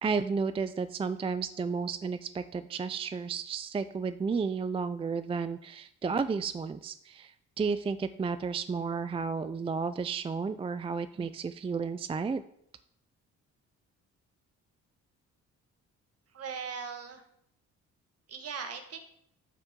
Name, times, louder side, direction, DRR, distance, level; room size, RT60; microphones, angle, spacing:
voice 1, 0.0-12.4, right 5 dB, 20° right, 12 dB, 0.3 m, -32 dB
voice 2, 16.3-17.2 18.3-19.0, right 6 dB, 55° right, 5 dB, 1.4 m, -39 dB
13.0 x 4.4 x 3.6 m, 0.75 s
cardioid pair, 90°, 30 cm